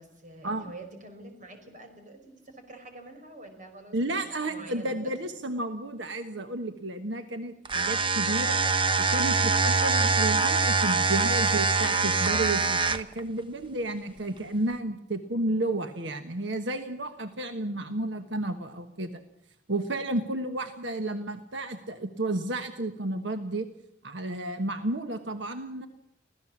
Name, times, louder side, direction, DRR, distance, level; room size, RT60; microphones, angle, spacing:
voice 1, 0.0-5.1, right 2 dB, 45° right, 6 dB, 5.3 m, -47 dB
voice 2, 3.9-8.6 9.0-19.2 19.7-23.7 24.0-25.9, right 2 dB, 80° right, 7 dB, 1.3 m, -32 dB
sound 1, 7.7-13.2, right 4 dB, 30° right, 1.0 m, -24 dB
25.5 x 16.5 x 7.3 m, 0.80 s
head